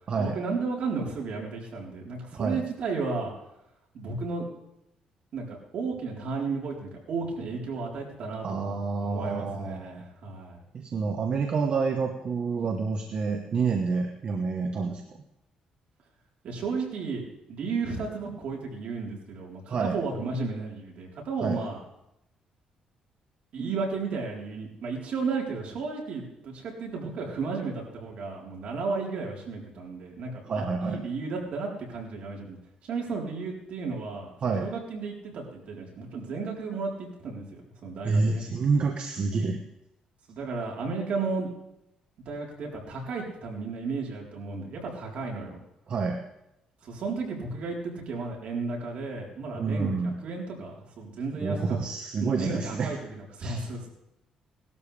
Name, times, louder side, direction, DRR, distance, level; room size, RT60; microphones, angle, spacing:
voice 1, 0.2-3.3 3.9-4.5 5.3-10.6 16.4-17.2 17.5-21.8 23.5-32.6 32.8-34.3 34.6-38.4 40.3-41.5 42.3-45.6 46.8-51.8 52.2-53.9, right 4 dB, 65° right, -2 dB, 4.0 m, -33 dB
voice 2, 8.4-10.0 10.7-15.0 19.7-20.0 21.4-21.6 30.4-31.0 34.4-34.7 38.0-39.6 45.9-46.2 49.5-50.1 51.4-52.9 53.4-53.6, right 4 dB, 50° right, 3 dB, 1.3 m, -28 dB
18.5 x 12.5 x 3.4 m, 0.85 s
cardioid pair, 105°, 2 cm